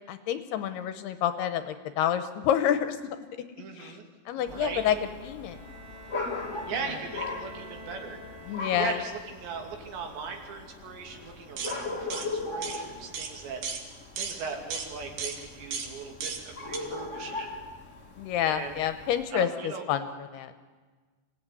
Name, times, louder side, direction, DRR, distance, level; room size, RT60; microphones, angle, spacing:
voice 1, 0.1-3.2 3.8-4.0 4.3-5.0 5.2-5.6 8.5-9.0 18.2-20.6, left 10 dB, 75° left, 10 dB, 2.7 m, -28 dB
voice 2, 3.6-4.0 4.4-4.8 6.7-8.2 8.8-13.6 14.2-17.5 18.5-18.8 19.3-19.8, right 5 dB, 75° right, 3 dB, 4.9 m, -38 dB
sound 1, 4.5-19.2, left 3 dB, 40° left, 1.0 m, -39 dB
Bowed string instrument, 5.4-9.4, right 1 dB, 15° right, 3.2 m, -47 dB
sound 2, 11.6-11.8 12.1-12.3 12.6-12.8 13.1-13.3 13.6-13.8 14.2-14.4 14.7-14.9 15.2-15.4 15.7-15.9 16.2-16.4 16.7-16.8, right 6 dB, 55° right, 3.1 m, -34 dB
26.0 x 17.5 x 9.6 m, 1.4 s
omnidirectional pair, 5.1 m